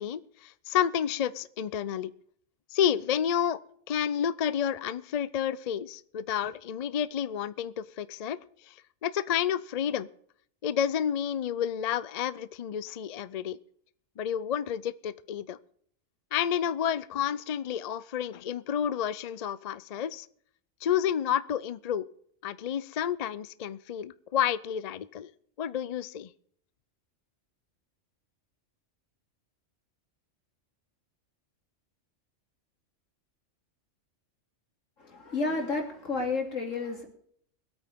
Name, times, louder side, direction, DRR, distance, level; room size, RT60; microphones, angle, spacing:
voice 1, 0.0-2.1 2.7-3.6 3.9-8.4 8.7-8.8 9.0-10.1 10.6-13.6 14.2-15.6 16.3-20.3 20.8-22.1 22.4-25.3 25.6-26.3, left 9 dB, 50° left, 17 dB, 0.4 m, -30 dB
voice 2, 35.0-37.1, left 3 dB, 90° left, 2 dB, 3.1 m, -31 dB
22.5 x 8.6 x 3.6 m, 0.64 s
omnidirectional pair, 1.3 m